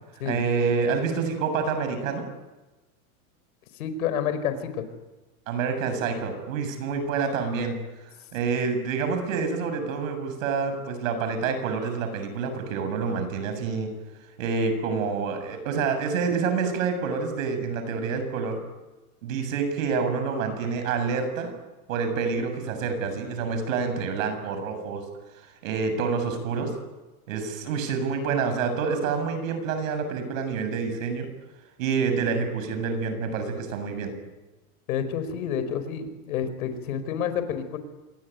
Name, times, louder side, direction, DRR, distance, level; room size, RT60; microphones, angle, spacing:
voice 1, 0.3-2.3 5.5-7.8 8.3-13.9 14.4-18.6 19.2-21.5 21.9-25.0 25.6-26.7 27.3-31.3 31.8-34.1, right 5 dB, 60° right, 8 dB, 7.6 m, -27 dB
voice 2, 3.8-4.8 34.9-37.8, left 8 dB, 70° left, 11 dB, 4.9 m, -29 dB
27.5 x 22.0 x 9.3 m, 1.1 s
supercardioid pair, 175°, 44 cm